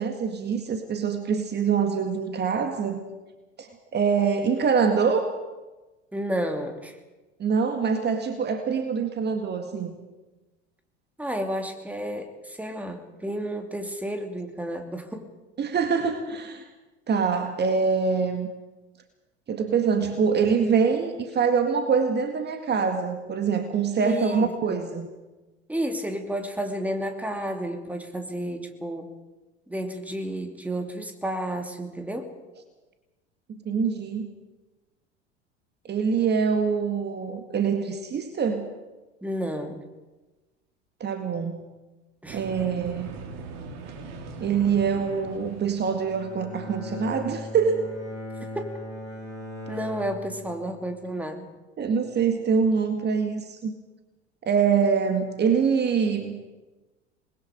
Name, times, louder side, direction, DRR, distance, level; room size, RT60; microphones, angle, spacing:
voice 1, 0.0-3.0 3.6-5.3 7.4-9.9 15.6-16.7 17.1-18.5 19.5-25.1 33.5-34.3 35.9-38.7 41.0-41.6 42.3-43.1 44.4-47.9 51.8-53.8 54.5-56.4, right 6 dB, 30° right, 6 dB, 2.0 m, -24 dB
voice 2, 6.1-7.0 11.2-15.3 24.0-24.8 25.7-29.1 29.7-32.3 39.2-39.8 42.2-42.4 48.4-48.8 49.7-51.5, right 1 dB, 5° right, 5 dB, 2.6 m, -31 dB
sound 1, 42.3-46.4, right 3 dB, 50° right, 2.7 m, -40 dB
Bowed string instrument, 45.8-51.1, left 1 dB, 85° left, 6.4 m, -39 dB
27.0 x 21.0 x 5.1 m, 1.1 s
figure-of-eight pair, 75°, 35 cm